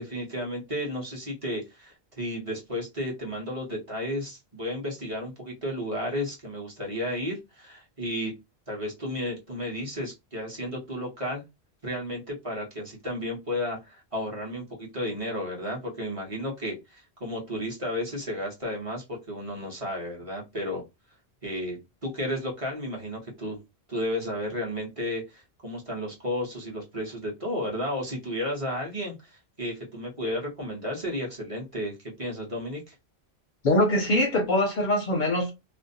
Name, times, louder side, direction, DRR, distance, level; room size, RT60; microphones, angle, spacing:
voice 1, 0.0-8.3 8.7-11.4 11.8-20.8 21.4-21.8 22.0-23.6 23.9-32.9, left 1 dB, 35° right, 0.9 m, -33 dB
voice 2, 33.6-35.5, left 1 dB, 55° left, 0.6 m, -23 dB
2.5 x 2.0 x 2.6 m
omnidirectional pair, 1.1 m